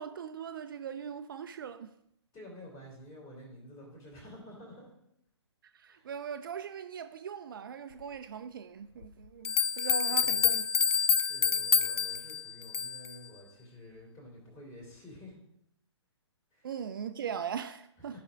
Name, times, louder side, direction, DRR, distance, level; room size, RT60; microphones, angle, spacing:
voice 1, 0.0-1.9 5.7-10.6 16.6-18.2, right 7 dB, 50° right, 0.4 m, -40 dB
voice 2, 2.3-4.9 5.9-6.0 10.1-10.5 11.1-15.4 16.5-16.7 18.0-18.2, left 1 dB, 20° left, 2.9 m, -50 dB
sound 1, 9.0-9.1 9.4-13.1, left 7 dB, 60° left, 0.4 m, -27 dB
13.0 x 5.7 x 2.5 m
figure-of-eight pair, 125°, 15 cm